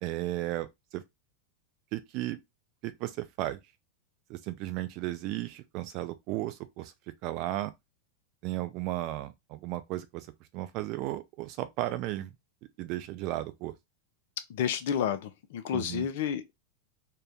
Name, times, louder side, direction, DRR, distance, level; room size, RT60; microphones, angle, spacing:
voice 1, 0.0-1.0 1.9-2.4 2.8-3.6 4.3-6.9 7.2-7.7 8.4-10.3 10.5-12.3 12.8-13.7 15.7-16.1, right 16 dB, 40° right, 0.4 m, -34 dB
voice 2, 14.5-16.5, left 9 dB, 55° left, 0.4 m, -30 dB
2.6 x 2.2 x 3.3 m
figure-of-eight pair, 90°, 0 cm